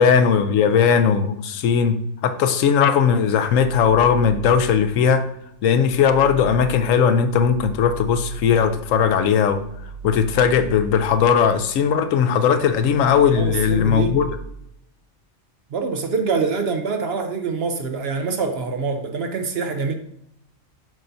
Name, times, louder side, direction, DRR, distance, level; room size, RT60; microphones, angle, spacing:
voice 1, 0.0-2.0 2.2-5.2 5.6-9.6 10.0-14.3, left 7 dB, 80° left, 1.0 m, -18 dB
sound 1, 9.3-11.8 12.2-14.4, right 5 dB, 60° left, 1.7 m, -38 dB
voice 2, 13.4-14.3 15.7-19.9, right 4 dB, 60° right, 0.8 m, -25 dB
7.7 x 5.6 x 2.6 m
omnidirectional pair, 1.4 m